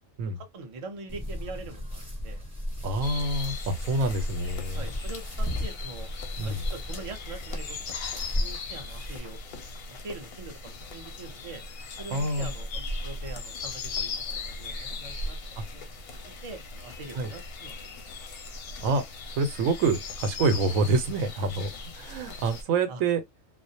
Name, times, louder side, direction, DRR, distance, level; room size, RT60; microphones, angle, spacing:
voice 1, 0.4-2.4 4.8-6.1 6.4-7.8 8.4-9.4 9.9-11.6 12.0-15.4 15.7-15.9 16.4-18.0 22.9-23.0, right 3 dB, 55° right, 0.3 m, -43 dB
sound 1, 1.1-9.2, equal, 5° right, 0.9 m, -34 dB
voice 2, 2.8-4.8 6.4-6.6 12.1-12.5 17.1-17.3 18.8-19.0 19.4-21.7 22.0-23.2, right 3 dB, 90° right, 1.0 m, -27 dB
sound 2, 3.0-22.6, left 3 dB, 60° left, 0.7 m, -38 dB
2.4 x 2.0 x 2.6 m
omnidirectional pair, 1.3 m